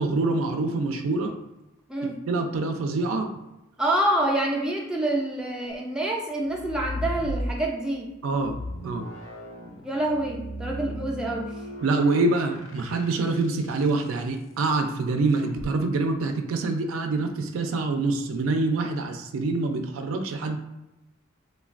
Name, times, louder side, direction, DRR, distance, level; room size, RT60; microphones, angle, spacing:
voice 1, 0.0-1.3 2.0-3.3 8.2-8.6 8.8-9.1 11.8-20.6, right 3 dB, 90° right, 5 dB, 0.4 m, -25 dB
voice 2, 3.8-8.1 9.8-11.6, right 1 dB, 5° right, -2 dB, 0.3 m, -27 dB
sound 1, 6.4-7.9 8.3-13.8 15.4-15.7, left 1 dB, 70° left, 0.4 m, -36 dB
3.2 x 2.2 x 2.4 m, 0.96 s
head